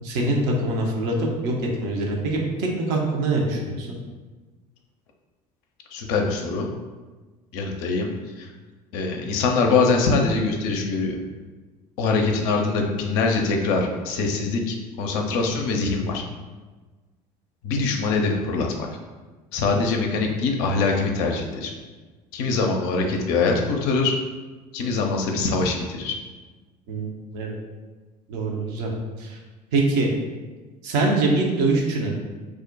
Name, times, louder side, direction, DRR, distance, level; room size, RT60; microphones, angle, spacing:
voice 1, 0.0-1.5 1.8-4.0 26.9-27.6 28.3-28.9 29.2-29.4 29.7-30.1 30.8-32.1, right 2 dB, 55° right, 0 dB, 0.7 m, -24 dB
voice 2, 5.9-6.7 7.5-8.1 8.4-8.5 8.9-11.2 12.0-16.2 17.6-18.7 19.5-21.7 22.3-24.1 24.7-26.2, left 4 dB, 60° left, 2 dB, 0.5 m, -23 dB
2.4 x 2.1 x 3.8 m, 1.3 s
figure-of-eight pair, 65°, 21 cm